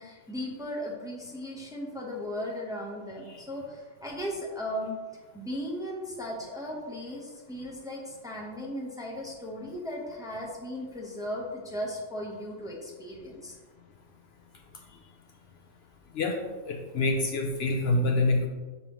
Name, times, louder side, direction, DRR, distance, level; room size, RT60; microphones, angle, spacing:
voice 1, 0.0-5.0 5.3-13.6, equal, 5° right, -2 dB, 0.8 m, -36 dB
voice 2, 16.7-18.5, left 2 dB, 65° left, 2 dB, 0.8 m, -26 dB
6.9 x 5.1 x 3.0 m, 1.3 s
omnidirectional pair, 1.3 m